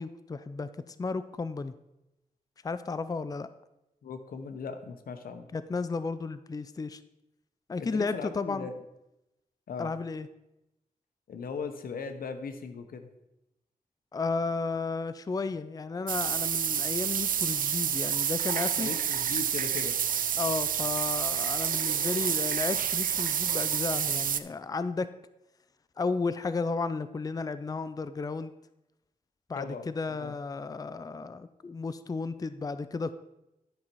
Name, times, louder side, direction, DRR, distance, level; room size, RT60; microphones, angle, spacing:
voice 1, 0.0-1.7 2.6-3.5 5.5-7.0 7.7-8.7 9.8-10.3 14.1-18.9 20.4-25.1 26.0-28.5 29.5-33.1, left 4 dB, 25° left, 13 dB, 0.4 m, -33 dB
voice 2, 4.0-5.5 7.8-8.8 9.7-9.9 11.3-13.1 18.8-20.0 29.5-30.3, left 5 dB, 85° left, 8 dB, 0.9 m, -38 dB
sound 1, 16.1-24.4, right 8 dB, 70° right, 0.5 m, -29 dB
11.5 x 5.6 x 4.6 m, 0.90 s
cardioid pair, 80°, 15 cm